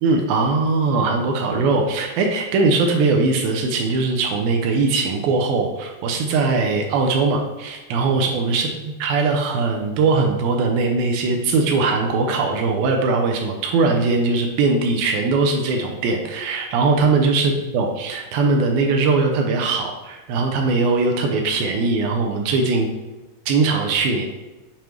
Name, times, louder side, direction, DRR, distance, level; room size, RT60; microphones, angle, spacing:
voice 1, 0.0-8.7 9.0-22.9 23.5-24.3, right 3 dB, 80° right, 2 dB, 2.2 m, -20 dB
7.4 x 5.1 x 3.1 m, 1.1 s
omnidirectional pair, 4.8 m